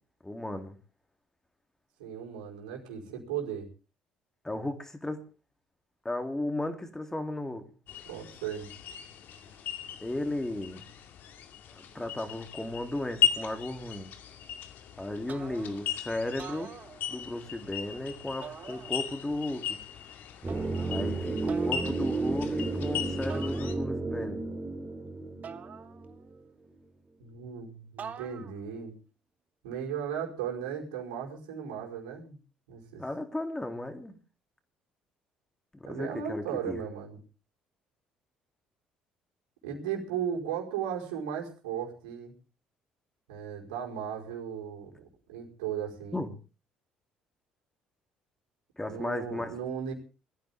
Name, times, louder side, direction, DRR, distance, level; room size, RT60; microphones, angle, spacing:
voice 1, 0.2-0.7 4.4-5.2 6.0-7.7 10.0-10.9 11.7-14.1 15.0-16.7 17.1-19.8 20.9-24.4 33.0-34.2 35.9-36.8 46.1-46.3 48.8-49.5, left 1 dB, 15° left, 5 dB, 3.2 m, -35 dB
voice 2, 2.0-3.7 8.0-8.7 27.2-28.9 29.6-32.4 32.7-33.0 35.8-37.2 39.6-42.3 43.3-46.2 48.9-49.9, right 8 dB, 75° right, -1 dB, 5.0 m, -36 dB
sound 1, 7.9-23.8, left 10 dB, 60° left, 2.4 m, -37 dB
sound 2, 15.3-15.9 16.3-17.4 18.4-19.3 20.5-21.0 21.5-22.0 23.3-24.1 25.4-26.4 28.0-28.7, right 7 dB, 45° right, 1.5 m, -46 dB
sound 3, 20.4-26.5 26.7-26.8, right 3 dB, 25° right, 3.0 m, -32 dB
22.0 x 14.5 x 3.7 m, 0.36 s
hypercardioid pair, 50°, 4 cm